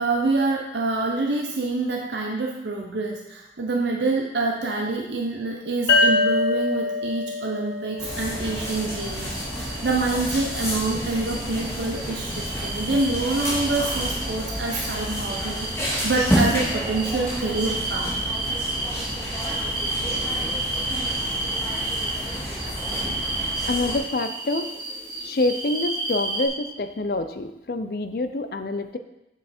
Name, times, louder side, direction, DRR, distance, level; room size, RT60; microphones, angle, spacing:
voice 1, 0.0-18.2, right 3 dB, 75° right, 0 dB, 0.8 m, -26 dB
sound 1, 5.9-9.3, left 2 dB, 75° left, 1.2 m, -24 dB
sound 2, 8.0-24.0, equal, 15° left, 2.0 m, -30 dB
sound 3, 8.6-26.5, right 2 dB, 25° right, 1.6 m, -32 dB
voice 2, 18.5-19.3 22.2-22.3 22.7-22.8 23.7-24.7 25.2-29.0, left 2 dB, 55° left, 8 dB, 0.6 m, -27 dB
6.9 x 6.8 x 4.3 m, 0.90 s
head